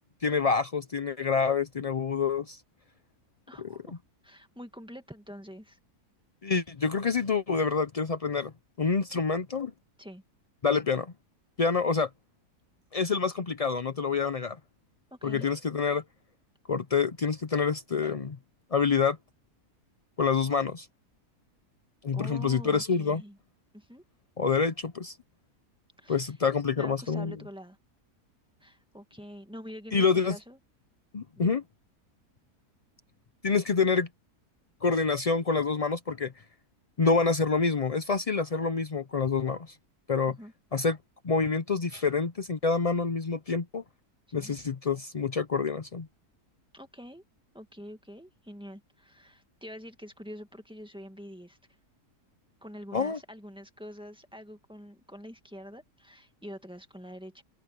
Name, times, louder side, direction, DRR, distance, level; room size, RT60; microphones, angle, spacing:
voice 1, 0.2-2.6 3.6-3.7 6.4-8.5 8.8-9.7 10.6-11.1 11.6-12.1 12.9-14.6 15.2-16.0 16.7-18.4 18.7-19.2 20.2-20.9 22.0-23.2 24.4-25.2 26.1-27.4 29.9-30.4 31.1-31.6 33.4-34.1 34.8-36.3 37.0-39.7 40.1-40.3 40.7-41.0 41.2-43.8 44.3-46.1 52.9-53.2, left 5 dB, 55° left, 0.4 m, -27 dB
voice 2, 3.5-5.8 10.0-10.2 15.1-15.5 22.1-23.4 23.7-24.0 26.0-26.3 26.8-27.8 28.6-30.6 31.3-31.6 40.3-40.5 44.3-44.6 46.7-47.2 47.5-51.6 52.6-57.4, equal, 5° right, 1.8 m, -46 dB
omnidirectional pair, 1.7 m